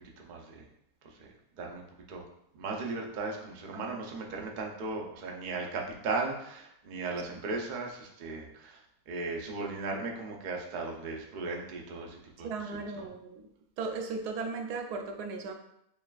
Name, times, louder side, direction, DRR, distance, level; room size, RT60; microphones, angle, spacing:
voice 1, 0.2-0.7 1.0-2.2 2.5-13.0, right 3 dB, 60° right, 0 dB, 0.5 m, -37 dB
voice 2, 12.4-13.5 13.8-15.5, right 4 dB, 85° right, 4 dB, 1.1 m, -36 dB
6.7 x 2.4 x 2.3 m, 0.77 s
omnidirectional pair, 1.6 m